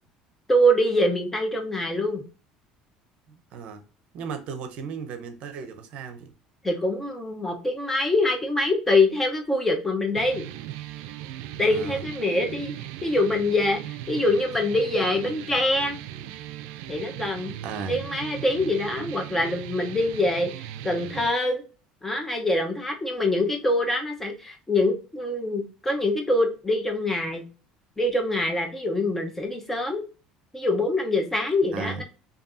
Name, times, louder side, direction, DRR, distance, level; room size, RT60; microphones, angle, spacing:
voice 1, 0.5-2.2 6.6-10.5 11.6-15.9 16.9-17.5 17.9-21.6 22.0-27.4 28.0-30.0 30.5-32.0, left 1 dB, 10° left, 0.9 m, -24 dB
voice 2, 3.3-3.8 4.1-6.3 11.7-12.0 17.6-18.0 31.7-32.0, right 5 dB, 60° right, 0.7 m, -35 dB
sound 1, 10.1-21.3, right 12 dB, 85° right, 0.3 m, -38 dB
5.1 x 2.7 x 2.6 m
cardioid pair, 120°, 2 cm